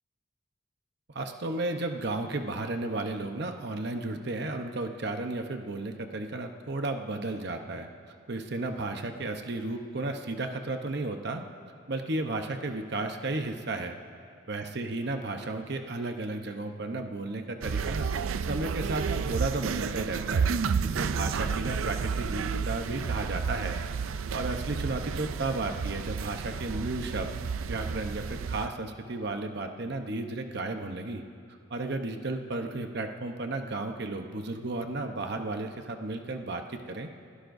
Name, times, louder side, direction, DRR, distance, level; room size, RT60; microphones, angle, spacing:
voice 1, 1.1-7.9 8.3-11.4 11.9-14.0 14.5-18.1 18.4-20.5 20.8-23.8 24.3-27.3 27.7-31.2 31.7-37.1, right 2 dB, 55° right, 5 dB, 0.9 m, -33 dB
sound 1, 17.6-28.7, right 5 dB, 85° right, 0.4 m, -31 dB
30.0 x 16.5 x 2.7 m, 2.3 s
head